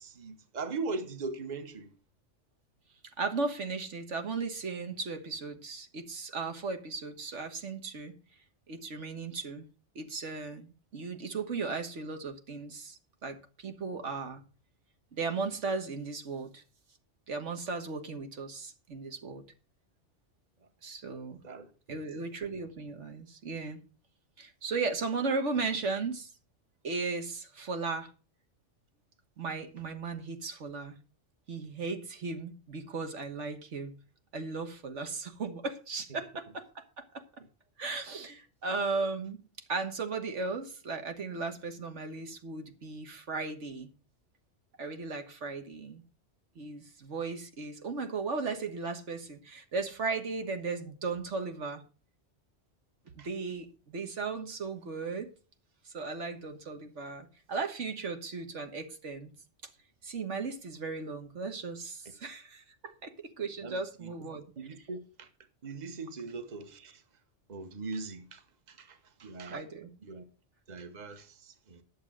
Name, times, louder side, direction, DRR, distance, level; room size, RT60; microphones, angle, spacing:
voice 1, 0.0-1.9 21.2-22.0 53.2-53.3 63.6-64.1 64.6-65.3 65.6-67.0 67.5-69.6 70.0-70.3 70.7-71.8, right 3 dB, 40° right, 1.2 m, -40 dB
voice 2, 3.2-8.2 8.7-9.7 10.0-14.4 15.1-16.6 17.3-19.4 20.8-21.4 21.9-23.8 24.4-26.3 26.8-28.1 29.4-31.0 31.5-33.9 34.3-37.2 37.8-39.4 39.7-43.9 44.8-46.0 46.6-51.8 53.2-55.3 55.9-59.3 60.0-63.1 63.4-64.4 69.5-69.9, right 4 dB, 80° right, 1.7 m, -36 dB
11.5 x 7.0 x 6.2 m
omnidirectional pair, 1.2 m